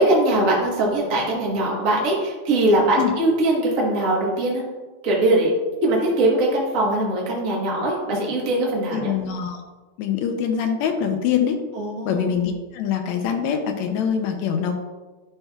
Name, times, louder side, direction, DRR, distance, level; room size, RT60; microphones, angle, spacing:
voice 1, 0.0-4.6 5.0-5.5 5.8-9.1 11.7-12.2, right 1 dB, 45° right, -4 dB, 1.1 m, -21 dB
voice 2, 8.9-9.6 10.0-11.6 12.1-14.7, left 8 dB, 80° left, 5 dB, 1.9 m, -24 dB
11.0 x 5.7 x 2.3 m, 1.3 s
omnidirectional pair, 3.3 m